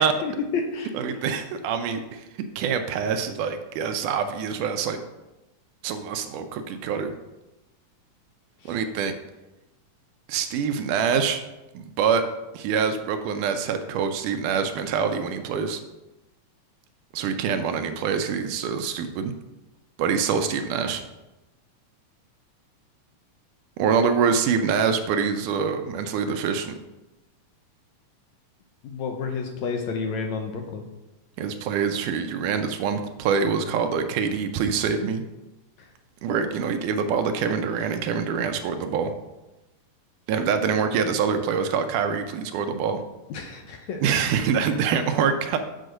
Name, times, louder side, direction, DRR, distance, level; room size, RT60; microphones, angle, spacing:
voice 1, 0.0-0.9 8.6-8.7 28.8-30.8 43.3-44.0, left 5 dB, 70° left, 3 dB, 1.9 m, -30 dB
voice 2, 0.9-2.3 2.6-5.0 5.8-7.1 8.7-9.1 10.3-11.4 11.7-12.2 12.5-15.8 17.1-19.3 20.0-21.0 23.8-26.8 31.4-35.2 36.2-39.1 40.3-43.0 44.0-45.6, right 6 dB, 80° right, 7 dB, 2.1 m, -25 dB
7.9 x 4.6 x 6.4 m, 1.0 s
omnidirectional pair, 3.7 m